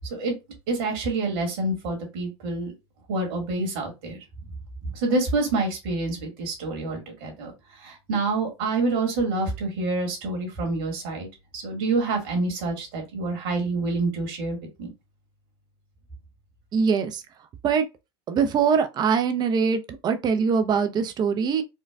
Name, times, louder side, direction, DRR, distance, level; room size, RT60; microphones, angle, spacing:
voice 1, 0.7-2.7 3.1-4.2 4.9-7.5 7.8-11.3 11.5-14.9, right 3 dB, 65° right, 1.9 m, -27 dB
voice 2, 16.7-17.2 17.6-17.8 18.3-21.6, right 6 dB, 30° right, 0.6 m, -23 dB
4.4 x 2.4 x 2.4 m
hypercardioid pair, 95°, 13 cm